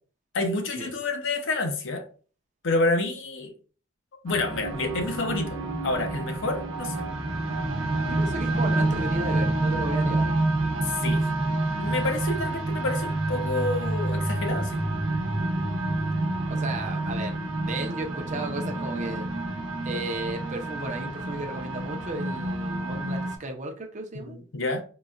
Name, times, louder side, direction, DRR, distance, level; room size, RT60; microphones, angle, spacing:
voice 1, 0.3-2.1 2.6-3.5 4.2-7.0 10.8-11.3 11.8-14.8 24.3-24.8, left 2 dB, 65° left, 0.6 m, -28 dB
sound 1, 4.3-23.4, right 2 dB, 85° right, 0.8 m, -28 dB
voice 2, 8.0-10.3 16.5-19.3 19.8-24.4, right 2 dB, 35° right, 0.5 m, -34 dB
3.9 x 2.1 x 2.4 m
head